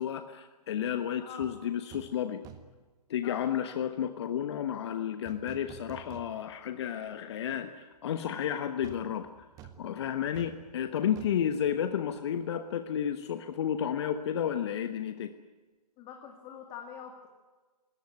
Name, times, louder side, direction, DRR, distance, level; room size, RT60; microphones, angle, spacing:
voice 1, 0.0-2.4 3.1-9.4 9.8-15.3, left 9 dB, 40° left, 8 dB, 1.2 m, -32 dB
sound 1, 1.4-1.6 1.9-2.2 2.4-2.9 5.3-6.7 7.1-7.2 8.8-12.5 12.7-12.9, right 9 dB, 15° right, 1.5 m, -51 dB
voice 2, 3.2-3.6 16.0-17.3, left 8 dB, 20° left, 3 dB, 2.1 m, -44 dB
22.5 x 18.0 x 9.2 m, 1.3 s
figure-of-eight pair, 140°, 21 cm